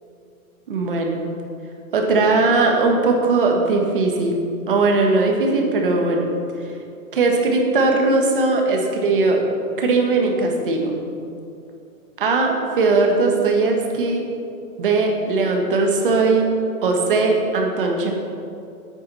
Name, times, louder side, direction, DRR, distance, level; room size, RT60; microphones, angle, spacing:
voice 1, 0.7-1.2 1.9-4.4 4.7-6.3 7.1-9.4 9.8-11.0 12.2-14.2 14.8-16.4 16.8-18.1, right 3 dB, 40° right, 1 dB, 1.4 m, -19 dB
8.8 x 8.7 x 5.5 m, 2.6 s
hypercardioid pair, 180°, 42 cm